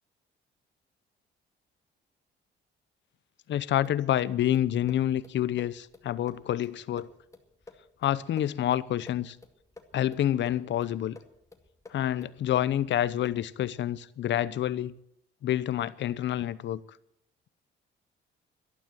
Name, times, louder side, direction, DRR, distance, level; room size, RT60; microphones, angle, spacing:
voice 1, 3.5-7.1 8.0-9.4 9.9-11.2 11.9-14.9 15.4-16.8, left 11 dB, 65° left, 0.8 m, -28 dB
sound 1, 3.8-13.6, left 3 dB, 15° left, 2.1 m, -53 dB
12.5 x 11.5 x 7.6 m
cardioid pair, 90°, 20 cm